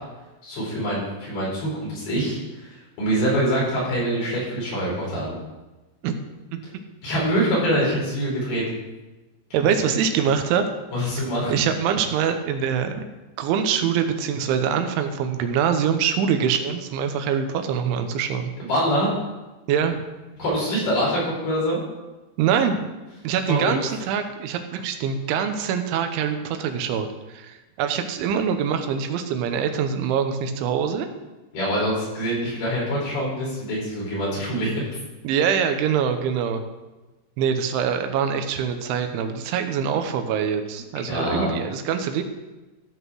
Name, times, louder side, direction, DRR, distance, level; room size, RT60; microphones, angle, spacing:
voice 1, 0.4-5.3 7.0-8.6 10.9-11.5 18.6-19.1 20.4-21.8 23.5-23.7 31.5-34.7 41.1-41.5, equal, 55° left, -5 dB, 6.2 m, -24 dB
voice 2, 9.5-10.7 11.5-13.1 13.4-18.5 19.7-20.0 22.4-22.8 23.2-31.1 35.2-36.6 37.4-42.2, right 7 dB, 85° right, 7 dB, 3.3 m, -24 dB
14.5 x 5.7 x 6.2 m, 1.1 s
omnidirectional pair, 5.4 m